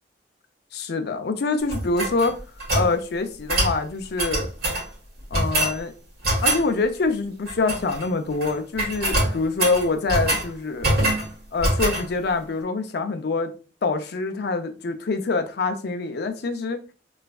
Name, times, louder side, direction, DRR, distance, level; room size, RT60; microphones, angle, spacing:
voice 1, 0.7-2.4 2.7-4.5 5.3-5.9 6.4-11.0 11.5-13.5 13.8-16.8, left 3 dB, 60° left, 0.5 m, -25 dB
sound 1, 1.7-2.9 3.5-3.8 4.2-4.9 5.3-5.8 6.2-6.6 7.5-8.0 8.3-8.5 8.8-10.5 10.8-11.3 11.6-12.0, right 1 dB, 60° right, 1.6 m, -23 dB
3.4 x 3.1 x 2.3 m
head